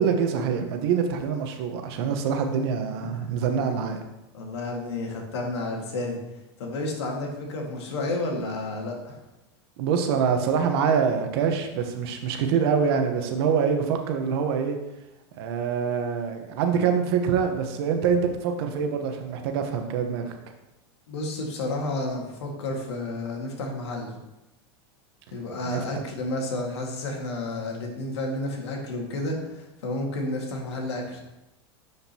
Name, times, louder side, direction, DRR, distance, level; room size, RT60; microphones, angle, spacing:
voice 1, 0.0-4.0 9.8-14.8 15.4-20.3 25.6-25.8, right 6 dB, 65° right, 5 dB, 1.2 m, -25 dB
voice 2, 4.3-6.2 6.6-9.2 21.1-24.1 25.3-31.2, left 2 dB, 85° left, 0 dB, 2.0 m, -31 dB
10.5 x 5.1 x 2.9 m, 0.96 s
supercardioid pair, 115°, 14 cm